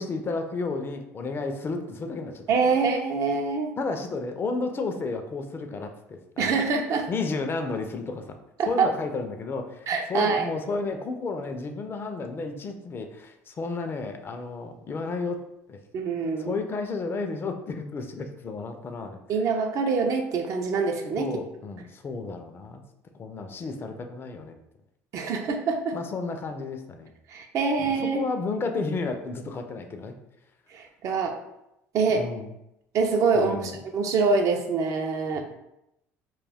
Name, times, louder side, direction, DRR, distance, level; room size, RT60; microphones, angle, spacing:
voice 1, 0.0-2.4 3.8-6.6 7.1-8.4 8.7-15.4 15.7-15.8 16.4-19.2 21.2-22.8 23.1-24.6 25.9-27.1 27.8-30.1 32.1-32.5 33.3-33.8, left 3 dB, 35° left, 6 dB, 0.4 m, -32 dB
voice 2, 2.5-3.7 6.4-7.1 8.6-8.9 9.9-10.5 15.9-16.6 19.3-21.4 25.1-26.0 27.3-28.3 30.7-31.4 31.9-32.2 32.9-35.4, right 4 dB, 55° right, 4 dB, 0.4 m, -25 dB
2.3 x 2.2 x 3.4 m, 0.85 s
supercardioid pair, 85°, 6 cm